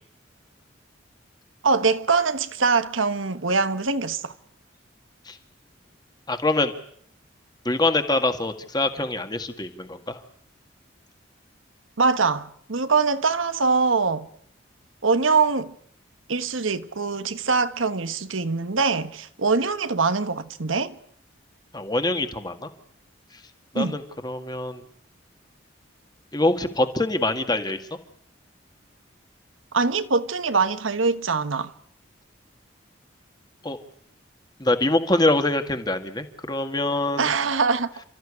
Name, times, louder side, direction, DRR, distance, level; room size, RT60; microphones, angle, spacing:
voice 1, 1.6-4.3 12.0-14.3 15.0-15.7 16.3-21.0 23.7-24.0 29.7-31.7 37.2-37.9, right 4 dB, 85° right, 1.3 m, -23 dB
voice 2, 6.3-6.7 7.7-10.2 21.7-22.7 23.7-24.8 26.3-27.8 33.6-33.8 34.6-37.3, left 2 dB, 20° left, 1.9 m, -24 dB
30.0 x 14.0 x 9.9 m
head